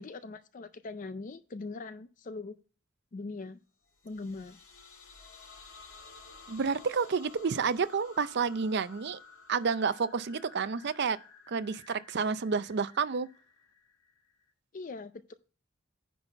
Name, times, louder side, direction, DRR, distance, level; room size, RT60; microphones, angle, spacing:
voice 1, 0.0-2.6 3.1-3.6 4.0-4.6 14.7-15.3, left 3 dB, 40° left, 0.4 m, -41 dB
sound 1, 3.9-14.5, left 4 dB, 75° left, 1.7 m, -54 dB
voice 2, 6.5-9.2 9.5-11.2 11.5-13.3, right 5 dB, 55° right, 0.5 m, -30 dB
10.0 x 4.0 x 5.6 m
head